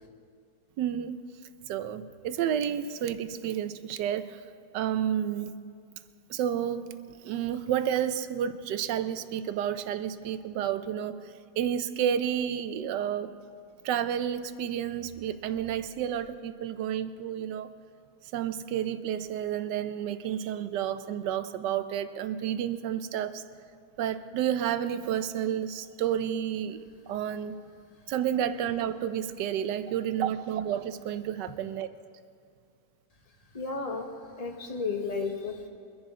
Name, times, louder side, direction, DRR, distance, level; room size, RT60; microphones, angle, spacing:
voice 1, 0.8-1.2 1.7-4.4 4.7-5.5 6.3-7.0 7.2-13.3 13.8-17.7 18.3-23.4 24.0-26.8 27.1-27.6 28.1-31.9, right 9 dB, 90° right, 11 dB, 1.3 m, -30 dB
voice 2, 33.5-34.1 34.4-35.7, left 4 dB, 25° left, 3 dB, 1.1 m, -33 dB
23.5 x 10.5 x 3.7 m, 2.2 s
omnidirectional pair, 1.8 m